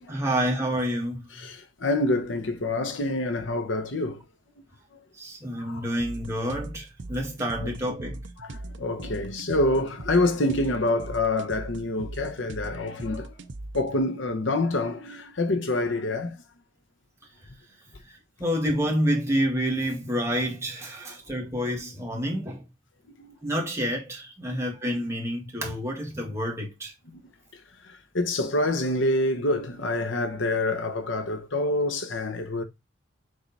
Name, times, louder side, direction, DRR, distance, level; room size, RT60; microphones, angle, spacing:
voice 1, 0.1-1.2 5.2-8.2 18.4-22.6 23.4-26.9, equal, 15° right, 2.0 m, -28 dB
voice 2, 1.4-4.2 5.5-5.9 7.6-7.7 8.4-13.3 13.7-16.4 21.1-21.2 23.2-23.3 24.5-24.6 27.1-27.2 27.8-32.6, left 2 dB, 75° left, 1.0 m, -27 dB
sound 1, 6.0-14.0, right 2 dB, 70° right, 0.7 m, -40 dB
6.5 x 3.8 x 4.2 m
head